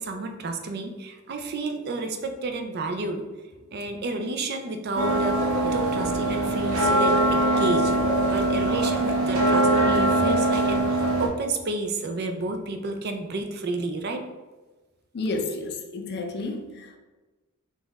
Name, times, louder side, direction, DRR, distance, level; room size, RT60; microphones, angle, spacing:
voice 1, 0.0-3.2 3.7-7.9 8.3-14.2, right 3 dB, 50° right, 0.4 m, -31 dB
sound 1, 5.0-11.3, right 1 dB, 85° right, 0.8 m, -22 dB
voice 2, 15.1-17.0, left 2 dB, 50° left, 0.5 m, -31 dB
3.9 x 2.4 x 3.9 m
head